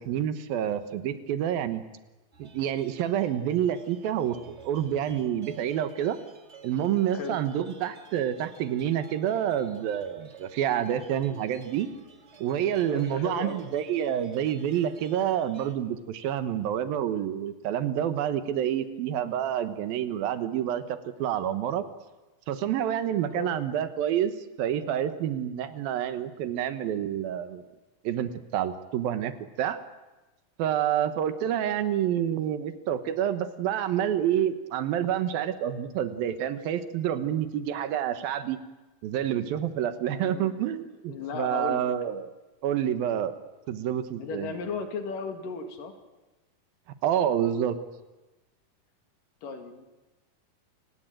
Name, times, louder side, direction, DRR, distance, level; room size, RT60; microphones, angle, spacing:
voice 1, 0.0-1.8 2.4-6.2 6.6-11.9 12.4-21.8 22.5-27.6 28.0-29.3 29.6-29.8 30.6-38.6 39.0-42.3 42.6-43.3 43.7-44.5 47.0-47.8, right 10 dB, 75° right, 11 dB, 3.0 m, -28 dB
sound 1, 2.3-15.8, right 5 dB, 30° right, 1.3 m, -52 dB
voice 2, 7.1-7.5 12.9-13.6 23.3-23.6 40.2-40.6 41.1-41.9 44.2-45.9 49.4-49.9, left 5 dB, 65° left, 6 dB, 3.8 m, -35 dB
29.0 x 17.0 x 9.0 m, 1.1 s
omnidirectional pair, 4.3 m